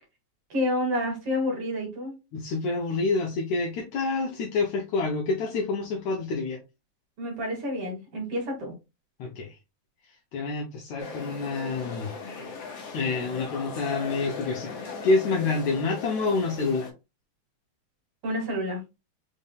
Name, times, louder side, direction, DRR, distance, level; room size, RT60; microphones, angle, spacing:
voice 1, 0.5-2.2 7.2-8.7 18.2-18.8, left 1 dB, 55° right, 1 dB, 2.0 m, -29 dB
voice 2, 2.3-6.6 9.2-9.6 10.3-12.1 12.9-14.8 15.0-16.9, left 3 dB, 75° left, 1 dB, 2.0 m, -27 dB
sound 1, 11.0-16.9, left 5 dB, 55° left, 2.2 m, -38 dB
5.3 x 3.5 x 2.3 m, 0.25 s
omnidirectional pair, 3.7 m